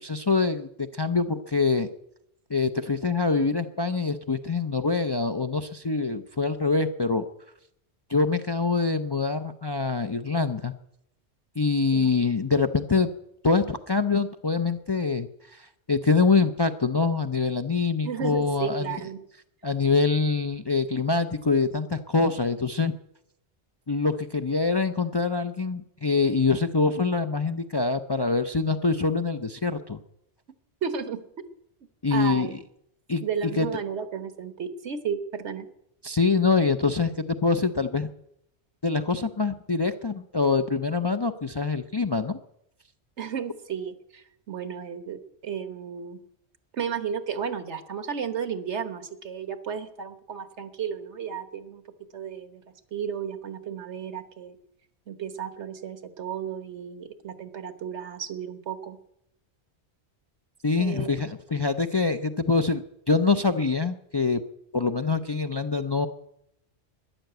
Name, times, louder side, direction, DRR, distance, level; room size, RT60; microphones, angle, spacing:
voice 1, 0.0-1.9 2.5-7.2 8.1-10.7 11.6-13.1 13.4-19.0 19.6-22.9 23.9-30.0 32.0-32.5 33.1-33.2 33.6-33.7 36.0-38.1 38.8-42.4 60.6-64.4 64.7-66.1, left 4 dB, 35° left, 8 dB, 0.4 m, -25 dB
voice 2, 18.0-19.2 30.8-31.2 32.1-32.6 33.2-35.7 43.2-46.2 46.7-51.8 52.1-52.6 52.9-54.6 55.1-59.0 60.8-61.1, right 7 dB, 85° right, 11 dB, 1.5 m, -33 dB
13.0 x 10.5 x 7.9 m, 0.78 s
omnidirectional pair, 1.1 m